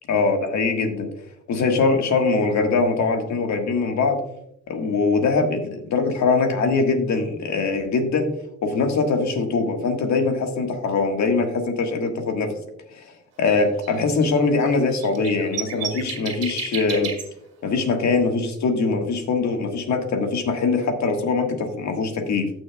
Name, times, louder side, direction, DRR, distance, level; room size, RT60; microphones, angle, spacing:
voice 1, 0.1-1.1 1.5-4.2 4.7-8.3 8.6-12.5 12.9-13.0 13.4-17.1 17.6-22.5, left 4 dB, 65° left, 4 dB, 1.6 m, -22 dB
sound 1, 13.5-13.6 13.8-13.9 14.2-14.3 14.6-14.7 14.9-17.2, right 7 dB, 55° right, 2.0 m, -32 dB
14.5 x 6.3 x 2.3 m, 0.79 s
cardioid pair, 90°, 30 cm